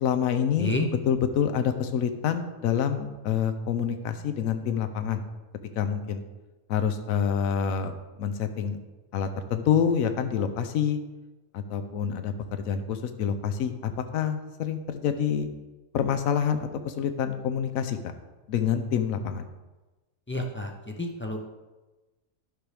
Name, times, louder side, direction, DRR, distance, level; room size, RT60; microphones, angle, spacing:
voice 1, 0.0-0.8 1.0-5.2 5.8-6.2 6.7-7.9 8.2-8.8 9.1-11.0 11.5-15.5 15.9-18.0 18.5-19.5, left 8 dB, 80° left, 9 dB, 1.1 m, -27 dB
voice 2, 20.3-21.4, left 2 dB, 15° left, 2 dB, 0.4 m, -30 dB
11.5 x 6.1 x 3.4 m, 1.2 s
omnidirectional pair, 1.5 m